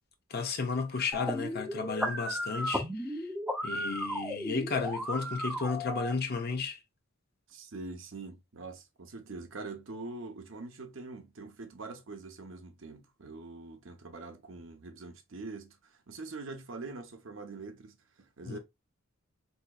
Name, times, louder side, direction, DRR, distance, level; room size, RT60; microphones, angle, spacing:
voice 1, 0.3-3.3 3.6-6.8 18.5-18.6, left 4 dB, 50° left, 0.6 m, -33 dB
sound 1, 1.1-6.1, equal, 5° right, 0.5 m, -35 dB
voice 2, 7.5-18.6, right 3 dB, 65° right, 0.7 m, -44 dB
3.9 x 2.7 x 2.3 m
head